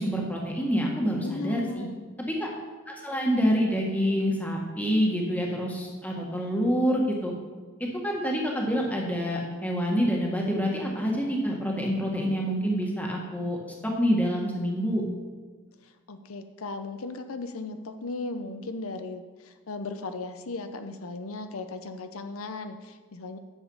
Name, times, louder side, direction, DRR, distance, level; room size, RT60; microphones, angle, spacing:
voice 1, 0.0-1.8 2.4-2.5 2.9-7.3 8.0-13.6 13.8-15.0, equal, 5° left, -1 dB, 1.6 m, -27 dB
voice 2, 1.2-2.0 15.8-23.4, left 3 dB, 90° left, 8 dB, 0.7 m, -37 dB
10.5 x 7.2 x 5.4 m, 1.4 s
head